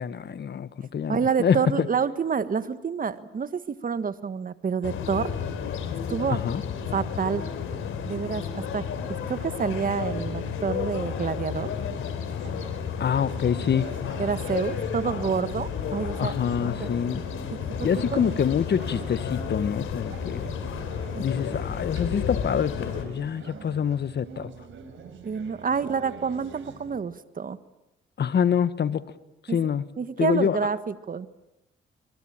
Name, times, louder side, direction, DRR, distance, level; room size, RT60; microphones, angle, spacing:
voice 1, 0.0-1.9 6.3-6.6 13.0-13.9 16.2-17.2 17.8-20.4 21.2-24.5 28.2-29.0 29.5-29.8 30.2-30.6, left 8 dB, 55° left, 14 dB, 1.4 m, -26 dB
voice 2, 1.1-5.3 6.1-6.4 6.9-7.4 8.0-8.8 9.1-11.7 14.2-16.3 17.8-18.3 21.1-21.3 21.8-21.9 25.2-27.6 29.5-29.6 30.0-31.3, right 6 dB, 45° right, 13 dB, 1.6 m, -28 dB
sound 1, 4.8-23.0, left 7 dB, 85° left, 3.5 m, -32 dB
sound 2, 11.6-27.0, right 5 dB, 75° right, 4.5 m, -45 dB
25.5 x 23.0 x 8.9 m, 0.93 s
cardioid pair, 80°, 20 cm